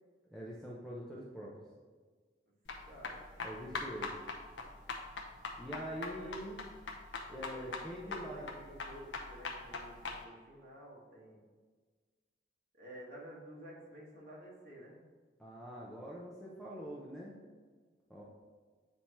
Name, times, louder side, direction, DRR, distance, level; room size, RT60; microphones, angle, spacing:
voice 1, 0.3-1.5 3.4-4.1 5.6-6.6 7.3-8.6 15.4-17.3 18.1-18.2, equal, ahead, -5 dB, 0.6 m, -44 dB
sound 1, 2.7-10.2, left 4 dB, 85° left, 0.8 m, -42 dB
voice 2, 2.8-3.3 5.9-6.3 7.3-11.4 12.7-15.0, right 1 dB, 55° right, -4 dB, 1.6 m, -52 dB
8.3 x 2.9 x 4.4 m, 1.5 s
head